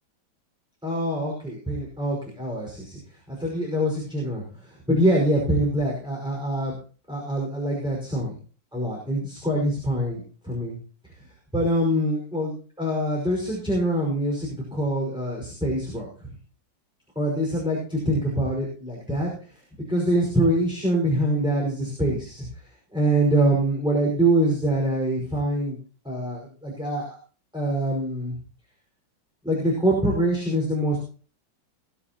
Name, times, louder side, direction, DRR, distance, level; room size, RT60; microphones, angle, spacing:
voice 1, 0.8-3.0 3.3-6.7 7.1-8.4 8.7-10.8 11.5-16.3 17.1-19.5 19.9-22.5 22.9-25.8 26.0-27.2 27.5-28.4 29.4-31.0, right 1 dB, ahead, -2 dB, 5.3 m, -24 dB
21.5 x 13.0 x 3.0 m, 0.40 s
omnidirectional pair, 2.2 m